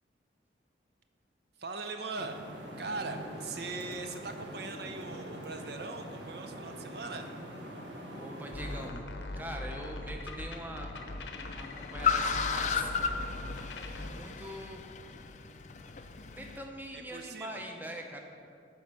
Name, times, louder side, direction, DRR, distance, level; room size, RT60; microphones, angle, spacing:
voice 1, 1.6-2.4 2.8-7.3 16.9-17.7, right 3 dB, 60° right, 6 dB, 0.6 m, -40 dB
sound 1, 2.1-8.9, right 1 dB, 80° right, 1.2 m, -44 dB
voice 2, 8.1-9.1 9.4-10.9 11.5-12.9 13.8-14.8 16.4-18.2, equal, 10° right, 2 dB, 0.6 m, -43 dB
sound 2, 8.5-14.1, left 2 dB, 80° left, 0.8 m, -41 dB
Car, 9.2-16.6, left 6 dB, 40° left, 0.4 m, -35 dB
12.5 x 4.3 x 6.0 m, 2.4 s
head